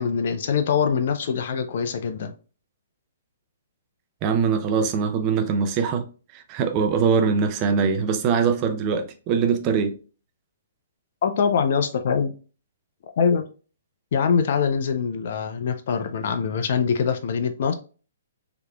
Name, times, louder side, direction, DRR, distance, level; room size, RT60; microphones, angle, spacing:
voice 1, 0.0-2.3 11.2-12.3 13.2-13.4 14.1-17.7, left 6 dB, 55° left, 0.5 m, -23 dB
voice 2, 4.2-6.0 6.3-9.9, right 6 dB, 35° right, 0.7 m, -22 dB
5.0 x 3.0 x 2.3 m
hypercardioid pair, 130°, 0 cm